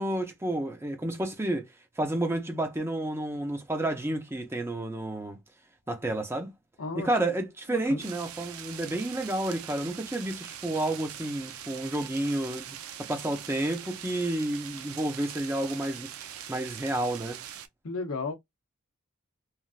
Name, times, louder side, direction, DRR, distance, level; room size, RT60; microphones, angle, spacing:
voice 1, 0.0-1.7 2.0-5.4 5.9-6.5 7.0-12.7 13.0-16.1 16.5-17.4, right 1 dB, 10° right, 0.6 m, -30 dB
voice 2, 7.7-8.1 17.8-18.3, left 3 dB, 80° left, 0.7 m, -33 dB
sound 1, 8.0-17.7, right 10 dB, 85° right, 0.5 m, -42 dB
3.1 x 2.4 x 2.4 m
head